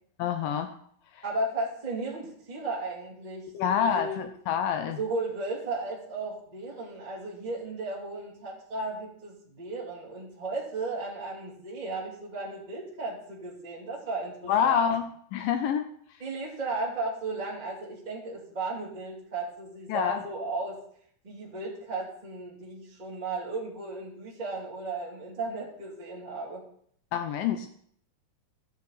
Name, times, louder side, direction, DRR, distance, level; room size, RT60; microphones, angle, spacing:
voice 1, 0.2-0.7 1.2-1.3 3.5-5.0 14.5-15.9 19.9-20.2 27.1-27.7, left 8 dB, 85° left, 8 dB, 1.9 m, -27 dB
voice 2, 1.2-4.2 4.9-14.9 16.2-20.8 21.2-26.6, right 3 dB, 15° right, -5 dB, 2.0 m, -35 dB
14.5 x 7.1 x 4.1 m, 0.64 s
omnidirectional pair, 4.5 m